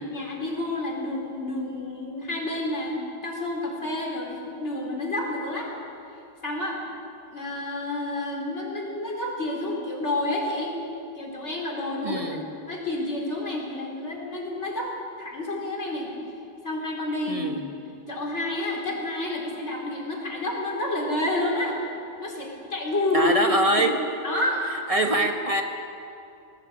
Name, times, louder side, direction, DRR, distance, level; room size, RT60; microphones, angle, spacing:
voice 1, 0.0-5.7 6.4-6.8 7.3-10.8 11.1-14.9 15.2-16.1 16.6-17.5 18.1-21.8 22.2-23.3 23.8-23.9 24.2-24.7, left 1 dB, 90° left, -2 dB, 4.6 m, -29 dB
voice 2, 12.0-12.5 17.3-17.6 23.1-24.0 24.9-25.6, right 1 dB, 30° right, 3 dB, 1.7 m, -23 dB
20.0 x 18.5 x 8.6 m, 2.6 s
omnidirectional pair, 1.2 m